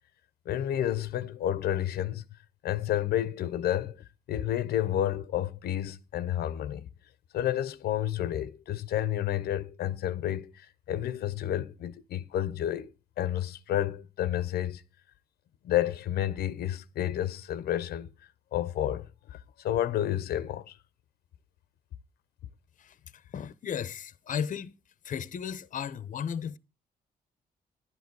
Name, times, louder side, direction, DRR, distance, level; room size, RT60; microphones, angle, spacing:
voice 1, 0.5-2.2 2.6-6.9 7.3-12.9 13.2-14.8 15.6-18.1 18.5-20.8, left 11 dB, 85° left, 0.8 m, -30 dB
voice 2, 22.8-24.7 25.0-26.6, left 8 dB, 55° left, 0.8 m, -35 dB
11.0 x 10.5 x 4.7 m
cardioid pair, 90°, 16 cm